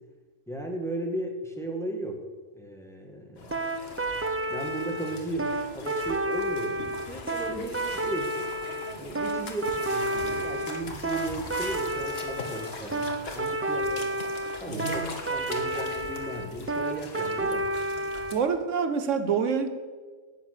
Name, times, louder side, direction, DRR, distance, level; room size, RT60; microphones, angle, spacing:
voice 1, 0.5-2.2 2.5-3.8 4.5-8.3 9.0-14.1 14.6-17.7, right 1 dB, ahead, 2 dB, 1.6 m, -35 dB
sound 1, 3.4-18.3, left 2 dB, 55° left, 1.7 m, -42 dB
sound 2, 3.5-18.4, right 1 dB, 20° right, 0.4 m, -30 dB
voice 2, 14.7-15.1 18.3-19.7, right 6 dB, 85° right, 10 dB, 1.2 m, -27 dB
11.5 x 8.8 x 6.5 m, 1.4 s
omnidirectional pair, 1.3 m